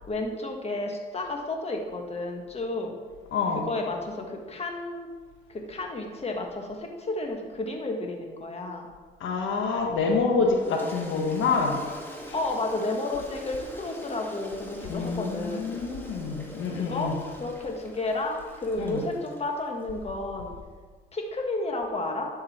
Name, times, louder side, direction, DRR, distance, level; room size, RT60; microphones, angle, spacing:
voice 1, 0.1-3.0 3.7-5.1 5.5-8.9 12.3-15.7 16.7-17.1 17.4-20.5 21.1-22.3, left 2 dB, 30° left, 2 dB, 1.6 m, -32 dB
voice 2, 3.3-3.6 9.2-11.8 12.2-12.3 14.9-17.2 18.8-19.0, left 4 dB, 80° left, 1 dB, 1.5 m, -27 dB
Toilet flush, 10.5-19.9, equal, 10° left, 1.7 m, -44 dB
10.5 x 6.6 x 4.4 m, 1.5 s
cardioid pair, 90°, 20 cm